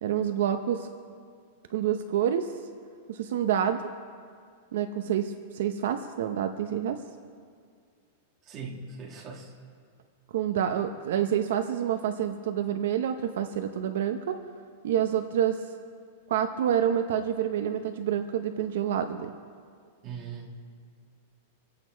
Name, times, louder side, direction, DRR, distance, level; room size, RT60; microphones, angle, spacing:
voice 1, 0.0-0.9 1.7-2.5 3.1-3.8 4.7-7.0 10.3-14.4 14.8-15.7 16.3-19.3, right 9 dB, 65° right, 7 dB, 0.8 m, -28 dB
voice 2, 8.4-9.5 20.0-20.5, right 5 dB, 25° right, 0 dB, 1.8 m, -40 dB
25.5 x 8.6 x 4.6 m, 2.1 s
supercardioid pair, 175°, 0 cm